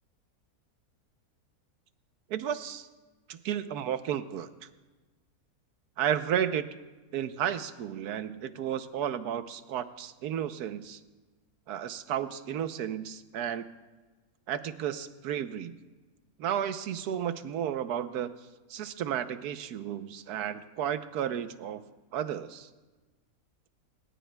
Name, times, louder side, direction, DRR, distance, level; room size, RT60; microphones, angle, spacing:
voice 1, 2.3-2.9 3.3-4.5 6.0-6.7 7.1-11.0 11.7-13.6 14.5-15.8 16.4-18.3 18.7-21.8 22.1-22.7, right 9 dB, 85° right, 11 dB, 1.3 m, -33 dB
29.5 x 17.0 x 2.3 m, 1.2 s
omnidirectional pair, 1.6 m